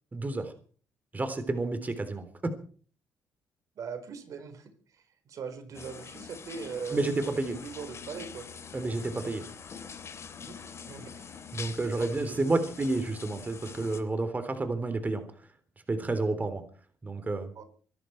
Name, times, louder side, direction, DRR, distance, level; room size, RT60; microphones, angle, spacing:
voice 1, 0.1-0.5 1.1-2.5 6.9-7.6 8.7-9.4 11.5-15.2 15.9-16.6 17.0-17.5, right 2 dB, 25° right, 9 dB, 3.5 m, -30 dB
voice 2, 3.8-4.7 5.3-7.1 7.4-8.5 10.4-10.6 10.9-11.1 11.6-12.6 17.5-17.6, right 6 dB, 65° right, 9 dB, 4.4 m, -40 dB
sound 1, 5.7-14.0, left 6 dB, 50° left, 3.4 m, -44 dB
24.0 x 11.5 x 4.6 m, 0.43 s
supercardioid pair, 65°, 6 cm